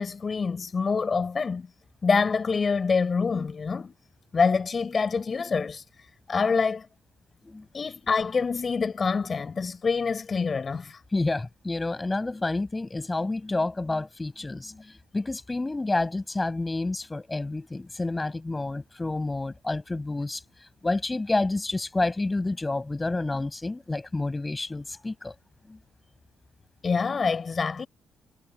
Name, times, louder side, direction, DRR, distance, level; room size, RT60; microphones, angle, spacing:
voice 1, 0.0-1.7 2.0-3.9 4.3-5.8 6.3-6.9 7.7-11.0 26.8-27.9, left 5 dB, 35° left, 5.9 m, -26 dB
voice 2, 11.1-20.4 20.8-25.3 25.7-25.8, left 2 dB, 20° left, 7.9 m, -29 dB
cardioid pair, 90°, 0 cm